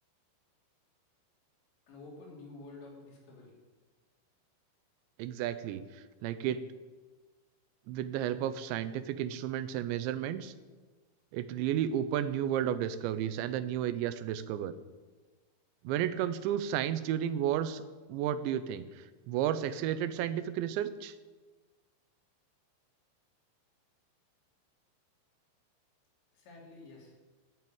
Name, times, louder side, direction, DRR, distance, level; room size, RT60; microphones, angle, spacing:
voice 1, 1.9-3.5 26.3-27.1, left 2 dB, 70° left, -2 dB, 5.2 m, -50 dB
voice 2, 5.2-6.6 7.9-10.5 11.3-14.7 15.8-17.8 18.1-21.2, right 10 dB, 80° right, 12 dB, 2.9 m, -32 dB
11.0 x 9.4 x 8.8 m, 1.3 s
omnidirectional pair, 5.4 m